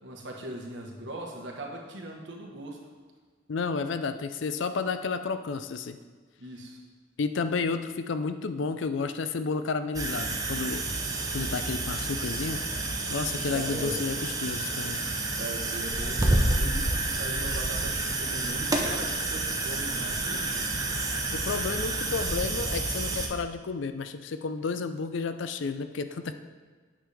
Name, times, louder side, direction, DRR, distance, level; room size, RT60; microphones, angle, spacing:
voice 1, 0.0-2.8 6.4-6.8 13.5-14.1 15.3-20.7, right 1 dB, 65° right, 0 dB, 1.4 m, -39 dB
voice 2, 3.5-6.0 7.2-11.0 11.3-12.6 13.1-15.1 21.3-26.3, left 4 dB, 65° left, 10 dB, 0.5 m, -31 dB
sound 1, 9.9-23.3, right 2 dB, 20° right, 0.7 m, -29 dB
9.3 x 6.5 x 3.4 m, 1.5 s
head